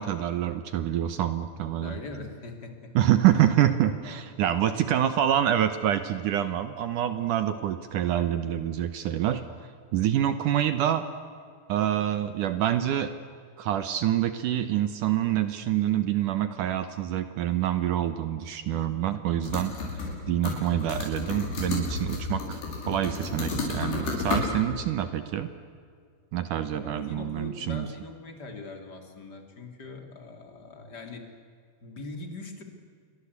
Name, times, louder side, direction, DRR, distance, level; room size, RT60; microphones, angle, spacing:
voice 1, 0.0-2.0 2.9-9.4 9.9-11.0 11.7-13.1 13.6-25.5 26.3-27.9, right 11 dB, 75° right, 11 dB, 1.9 m, -26 dB
voice 2, 1.8-2.9 3.3-3.5 4.0-4.7 26.7-31.3 31.8-32.6, left 3 dB, 25° left, 5 dB, 2.9 m, -42 dB
sound 1, 19.4-20.2 20.4-24.5, left 3 dB, 70° left, 7.7 m, -31 dB
29.0 x 22.5 x 8.3 m, 2.2 s
omnidirectional pair, 5.0 m